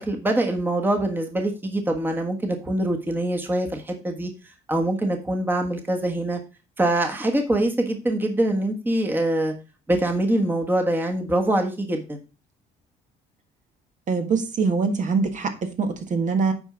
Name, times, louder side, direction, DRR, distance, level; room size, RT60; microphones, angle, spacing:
voice 1, 0.0-4.3 4.7-6.4 6.8-9.5 9.9-12.2, right 1 dB, 10° right, 1.4 m, -24 dB
voice 2, 14.1-16.5, right 4 dB, 45° right, 1.6 m, -23 dB
8.9 x 4.5 x 5.0 m
cardioid pair, 110°, 17 cm